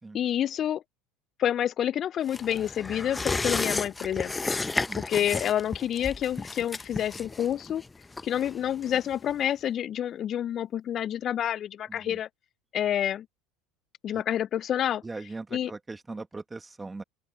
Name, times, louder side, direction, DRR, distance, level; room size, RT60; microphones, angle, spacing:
voice 1, 0.1-0.8 1.4-4.3 5.1-7.8 8.2-12.3 12.7-13.3 14.0-15.0 15.5-15.7, left 10 dB, 45° left, 0.6 m, -28 dB
sound 1, 2.3-9.4 9.7-9.8, left 3 dB, 15° left, 1.1 m, -33 dB
voice 2, 4.9-5.3 11.9-12.2 14.1-14.2 15.0-17.0, right 3 dB, 15° right, 2.0 m, -40 dB
open air
hypercardioid pair, 75°, 0 cm